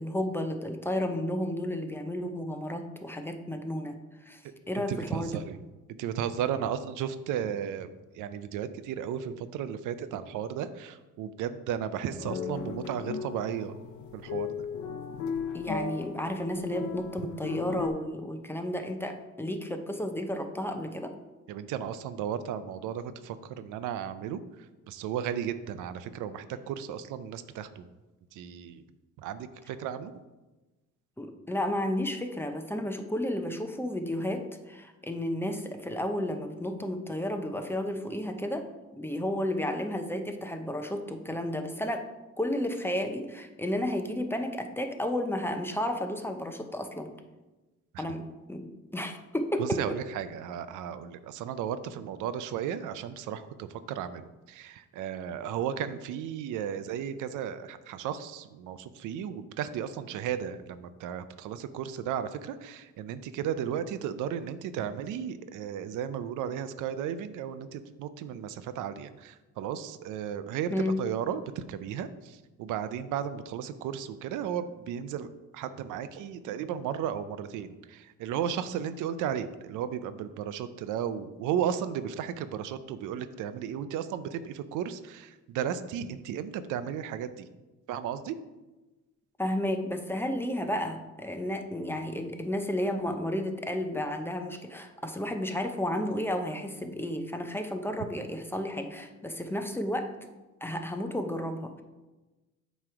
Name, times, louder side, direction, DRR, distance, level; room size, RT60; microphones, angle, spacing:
voice 1, 0.0-5.4 15.5-21.1 31.2-38.7 38.9-42.0 42.4-47.1 48.0-50.0 70.7-71.0 89.4-100.1 100.6-101.8, left 1 dB, 10° left, 5 dB, 0.6 m, -32 dB
voice 2, 4.8-5.6 6.0-13.8 14.1-14.6 21.5-24.4 24.9-27.8 28.3-28.8 29.2-30.1 47.9-48.0 49.6-54.2 54.5-70.7 71.0-75.3 75.5-87.5 87.9-88.4, right 9 dB, 85° right, 12 dB, 0.5 m, -34 dB
sound 1, 12.2-17.9, left 6 dB, 70° left, 0.7 m, -36 dB
7.6 x 3.1 x 4.8 m, 1.1 s
cardioid pair, 90°, 30 cm